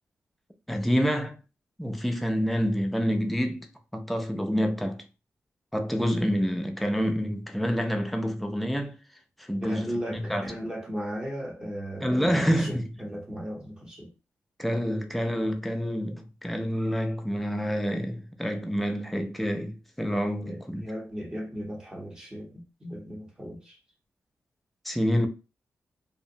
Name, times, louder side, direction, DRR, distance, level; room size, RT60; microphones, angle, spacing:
voice 1, 0.7-1.4 1.8-3.7 3.9-5.0 5.7-9.0 9.4-10.5 12.0-12.9 14.6-20.8 24.8-25.3, equal, ahead, 0.3 m, -27 dB
voice 2, 9.6-14.1 20.4-23.8, equal, 15° right, 0.8 m, -36 dB
2.7 x 2.0 x 2.6 m
wide cardioid pair, 165°, 5 cm